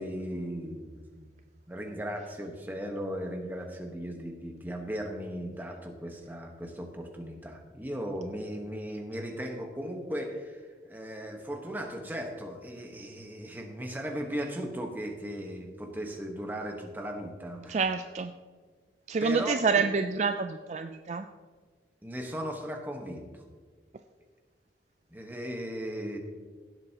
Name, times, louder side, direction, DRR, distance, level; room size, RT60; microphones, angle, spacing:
voice 1, 0.0-1.4 1.7-17.8 19.2-19.6 22.0-23.3 25.1-26.2, equal, 10° right, 2 dB, 1.2 m, -37 dB
voice 2, 17.7-18.3 19.1-21.3, right 4 dB, 40° right, 8 dB, 0.3 m, -28 dB
17.0 x 7.9 x 2.9 m, 1.5 s
head